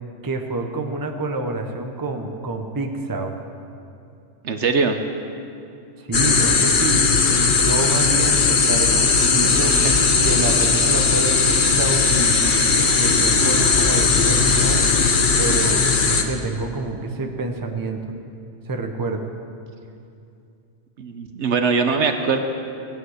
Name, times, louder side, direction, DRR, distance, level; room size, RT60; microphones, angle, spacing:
voice 1, 0.2-3.4 6.0-9.7 10.2-12.6 12.9-14.8 15.4-18.0 18.7-19.2, right 2 dB, 20° right, 4 dB, 0.8 m, -27 dB
voice 2, 4.4-5.0 9.8-9.9 21.0-22.4, right 5 dB, 65° right, 6 dB, 1.1 m, -21 dB
sound 1, 6.1-16.2, left 4 dB, 45° left, 1.0 m, -18 dB
sound 2, 9.7-15.0, left 3 dB, 80° left, 1.7 m, -35 dB
17.0 x 9.1 x 6.5 m, 2.5 s
omnidirectional pair, 1.3 m